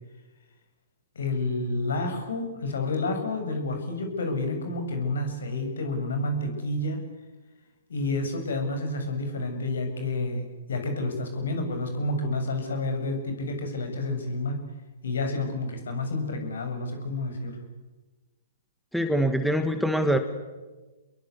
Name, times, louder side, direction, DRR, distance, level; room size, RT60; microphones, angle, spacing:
voice 1, 1.2-7.0 7.9-14.6 15.0-17.6, left 2 dB, 70° left, 6 dB, 7.1 m, -29 dB
voice 2, 18.9-20.2, right 1 dB, ahead, 7 dB, 1.9 m, -24 dB
29.0 x 22.0 x 8.4 m, 1.2 s
figure-of-eight pair, 120°, 0 cm